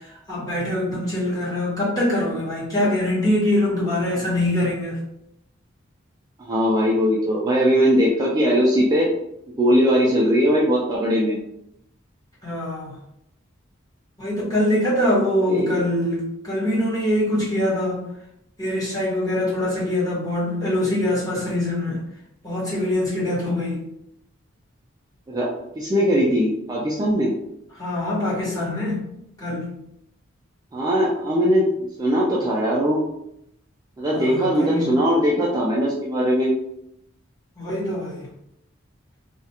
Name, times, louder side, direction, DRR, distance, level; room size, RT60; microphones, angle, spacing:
voice 1, 0.3-5.0 12.4-12.9 14.2-18.0 18.6-22.0 22.4-23.8 27.8-29.0 29.4-29.7 34.1-34.9 37.6-38.3, left 1 dB, 20° left, -8 dB, 1.0 m, -23 dB
voice 2, 6.5-9.1 9.6-11.4 15.5-15.8 25.3-25.5 25.8-27.3 30.7-31.7 32.0-33.0 34.0-36.5, equal, 20° right, -4 dB, 0.3 m, -20 dB
2.3 x 2.1 x 2.8 m, 0.79 s
head